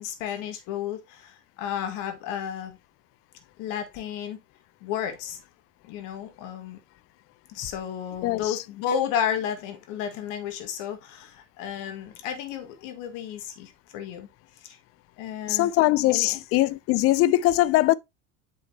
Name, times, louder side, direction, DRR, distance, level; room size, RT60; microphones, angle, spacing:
voice 1, 0.0-2.8 3.6-4.4 4.8-5.4 5.9-6.8 7.5-14.3 14.6-14.8 15.2-15.7 16.1-16.4, left 9 dB, 55° left, 1.9 m, -32 dB
voice 2, 8.2-8.6 15.5-17.9, left 16 dB, 40° left, 0.5 m, -21 dB
7.5 x 5.5 x 2.9 m
hypercardioid pair, 80°, 37 cm